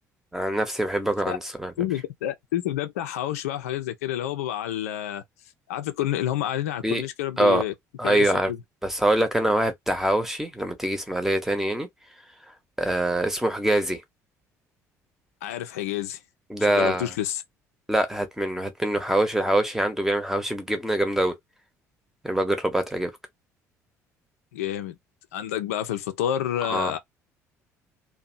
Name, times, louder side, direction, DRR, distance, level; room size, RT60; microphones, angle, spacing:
voice 1, 0.3-1.7 6.8-7.0 7.4-7.6 8.0-8.5 8.8-11.9 12.8-14.0 16.5-17.1 17.9-21.3 22.2-23.1 26.7-26.9, right 1 dB, 5° right, 0.8 m, -24 dB
voice 2, 1.8-5.2 5.7-7.7 8.0-8.6 9.0-9.2 15.4-16.2 16.7-17.4 24.5-25.0 25.3-27.0, left 11 dB, 70° left, 0.4 m, -29 dB
2.7 x 2.1 x 2.5 m
figure-of-eight pair, 55°, 8 cm